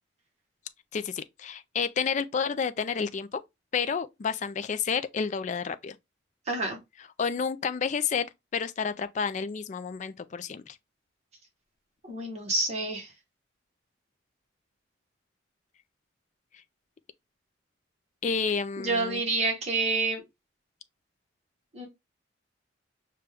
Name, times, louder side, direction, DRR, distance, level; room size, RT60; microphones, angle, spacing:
voice 1, 0.9-3.4 3.7-6.0 7.2-10.8 18.2-19.2, left 6 dB, 35° left, 0.3 m, -30 dB
voice 2, 6.5-6.8 12.0-13.1 18.8-20.2 21.7-21.9, right 3 dB, 35° right, 1.1 m, -28 dB
5.2 x 2.2 x 3.3 m
head